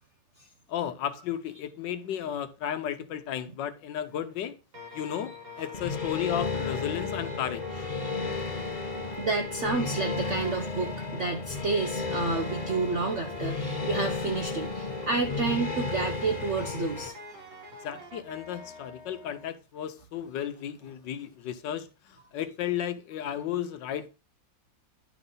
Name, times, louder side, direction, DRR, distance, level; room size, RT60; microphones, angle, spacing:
voice 1, 0.7-4.5 4.9-7.6 17.8-24.1, left 10 dB, 75° left, 1.3 m, -34 dB
sound 1, 4.7-19.5, equal, 85° right, 3.1 m, -45 dB
sound 2, 5.7-17.1, left 4 dB, 35° left, 0.7 m, -33 dB
voice 2, 9.2-17.1, right 3 dB, 65° right, 0.7 m, -30 dB
10.5 x 4.0 x 3.8 m
omnidirectional pair, 2.0 m